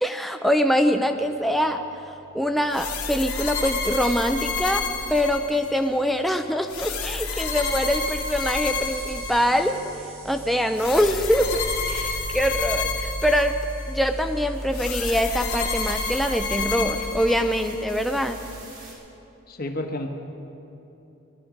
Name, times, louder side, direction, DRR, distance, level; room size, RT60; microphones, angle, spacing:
voice 1, 0.0-4.8 5.1-9.8 10.2-13.6 13.9-18.4, equal, ahead, 5 dB, 0.4 m, -24 dB
sound 1, 0.7-18.6, right 1 dB, 60° right, 3.0 m, -40 dB
sound 2, 2.7-5.9 6.7-9.8 10.7-13.9 14.7-17.8, left 4 dB, 80° left, 2.4 m, -30 dB
sound 3, 13.4-18.9, right 2 dB, 80° right, 4.5 m, -47 dB
voice 2, 19.5-20.1, left 1 dB, 45° left, 4 dB, 1.2 m, -30 dB
20.5 x 12.0 x 5.0 m, 2.9 s
head